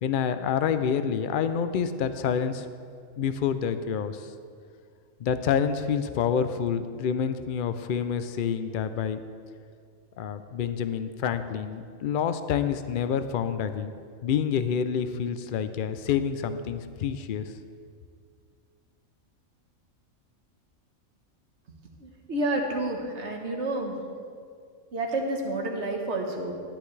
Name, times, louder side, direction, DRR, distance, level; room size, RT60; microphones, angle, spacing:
voice 1, 0.0-2.7 3.2-4.3 5.2-9.2 10.2-13.9 14.2-17.5, left 7 dB, 65° left, 10 dB, 0.5 m, -28 dB
voice 2, 22.0-23.9 24.9-26.5, right 2 dB, 55° right, 0 dB, 1.4 m, -29 dB
13.5 x 10.5 x 3.3 m, 2.2 s
omnidirectional pair, 1.4 m